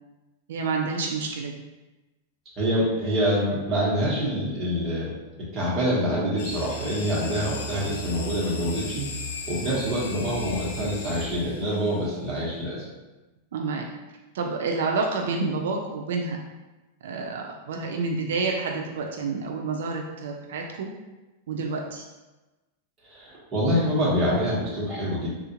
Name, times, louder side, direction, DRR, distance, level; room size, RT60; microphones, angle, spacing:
voice 1, 0.5-1.5 13.5-13.8 14.3-16.4 17.0-20.9 21.5-22.1, right 4 dB, 80° right, 1 dB, 0.3 m, -29 dB
voice 2, 2.6-9.1 9.5-12.8 23.0-25.3, equal, 25° right, -7 dB, 1.1 m, -26 dB
sound 1, 6.4-11.9, left 1 dB, 85° left, 0.5 m, -36 dB
3.5 x 2.4 x 2.9 m, 1.1 s
supercardioid pair, 155°, 0 cm